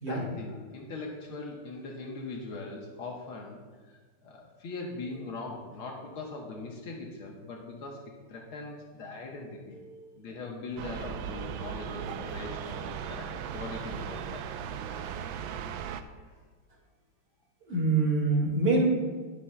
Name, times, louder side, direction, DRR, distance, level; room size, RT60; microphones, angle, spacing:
voice 1, 0.1-3.6 3.9-8.0 8.3-9.8 10.2-14.5 16.3-16.4, left 3 dB, 80° left, -1 dB, 2.0 m, -41 dB
sound 1, 10.8-16.0, right 8 dB, 75° right, 1.3 m, -37 dB
voice 2, 17.7-18.9, right 3 dB, 45° right, -2 dB, 2.6 m, -25 dB
20.5 x 7.1 x 2.2 m, 1.4 s
omnidirectional pair, 2.3 m